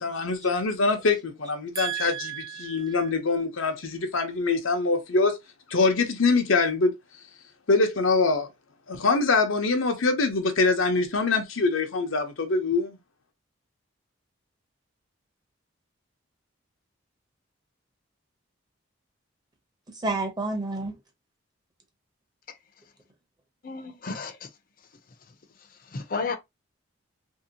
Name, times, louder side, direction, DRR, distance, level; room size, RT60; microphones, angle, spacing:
voice 1, 0.0-5.4 5.7-6.9 7.7-8.5 8.9-13.0, left 3 dB, 85° left, 0.8 m, -24 dB
voice 2, 1.7-3.0 19.9-20.9, right 4 dB, 20° right, 0.7 m, -31 dB
voice 3, 23.6-24.3 25.9-26.4, left 4 dB, 45° left, 0.5 m, -31 dB
2.9 x 2.7 x 2.8 m
head